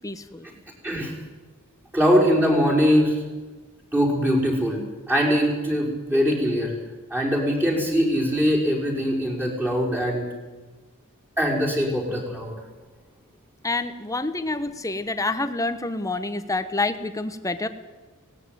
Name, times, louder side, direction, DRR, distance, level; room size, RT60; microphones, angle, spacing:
voice 1, 0.0-0.5 13.6-17.7, left 2 dB, 15° left, 10 dB, 1.2 m, -27 dB
voice 2, 1.9-3.2 3.9-6.7 7.1-10.3 11.4-12.5, equal, 10° right, -3 dB, 5.4 m, -22 dB
18.0 x 18.0 x 9.4 m, 1.3 s
head